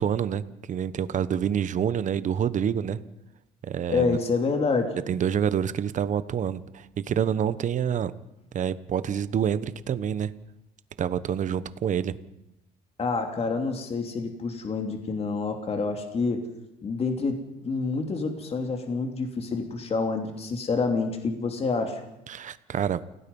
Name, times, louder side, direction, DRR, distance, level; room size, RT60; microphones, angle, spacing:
voice 1, 0.0-3.0 3.6-4.2 5.1-8.1 8.5-10.3 11.0-12.2 22.3-23.0, right 8 dB, 45° right, 14 dB, 1.1 m, -27 dB
voice 2, 3.9-5.0 13.0-16.5 16.8-22.0, left 4 dB, 35° left, 4 dB, 2.9 m, -27 dB
29.0 x 17.0 x 5.5 m, 0.89 s
cardioid pair, 110°, 17 cm